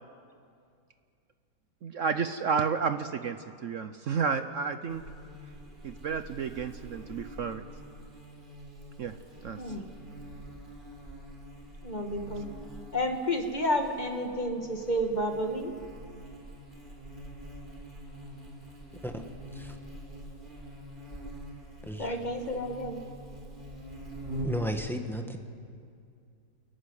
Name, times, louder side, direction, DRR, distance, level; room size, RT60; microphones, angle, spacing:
voice 1, 1.8-5.0 5.8-7.6 9.0-9.2 9.4-9.6 12.3-12.4, right 6 dB, 60° right, 10 dB, 0.8 m, -31 dB
Buzz, 4.9-24.7, right 1 dB, 25° right, 3.9 m, -45 dB
voice 2, 9.6-9.9 11.8-12.5 12.9-15.7 22.0-23.0, equal, 25° left, 4 dB, 1.8 m, -31 dB
voice 3, 21.8-22.2 24.4-25.4, equal, ahead, 4 dB, 1.2 m, -34 dB
29.0 x 14.5 x 9.8 m, 2.4 s
omnidirectional pair, 2.0 m